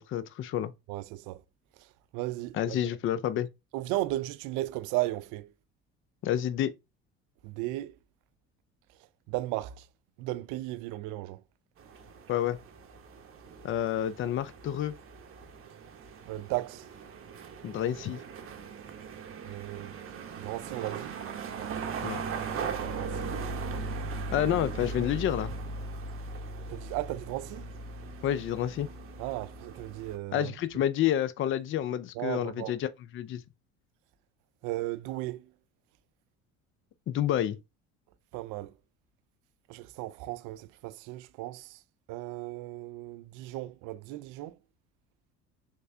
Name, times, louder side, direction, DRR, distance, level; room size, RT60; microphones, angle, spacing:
voice 1, 0.0-0.7 2.5-3.5 6.2-6.7 12.3-12.6 13.6-14.9 17.6-18.2 22.0-22.2 24.3-25.5 28.2-28.9 30.3-32.9 33.1-33.4 37.1-37.6, left 11 dB, 40° left, 0.5 m, -29 dB
voice 2, 0.9-1.4 1.8-2.8 3.7-5.5 7.4-8.0 9.0-9.9 10.2-11.4 16.3-16.9 19.4-19.9 20.3-21.2 22.7-23.4 26.7-27.7 29.2-30.5 32.1-32.8 34.6-35.5 38.3-38.7 39.7-41.8 42.1-44.6, right 17 dB, 65° right, 0.5 m, -35 dB
sound 1, 11.8-30.2, right 4 dB, 40° right, 0.9 m, -39 dB
3.3 x 3.2 x 2.7 m
supercardioid pair, 80°, 32 cm